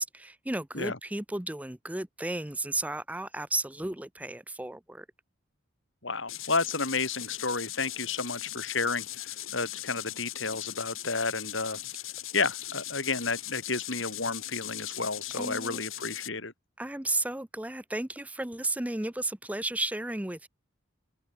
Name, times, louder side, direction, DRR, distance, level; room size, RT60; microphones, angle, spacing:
voice 1, 0.0-5.0 15.3-15.8 16.8-20.5, right 2 dB, 5° right, 0.6 m, -33 dB
voice 2, 6.0-11.8 12.3-16.5, left 4 dB, 65° left, 4.2 m, -31 dB
sound 1, 6.3-16.3, left 14 dB, 85° left, 3.3 m, -39 dB
head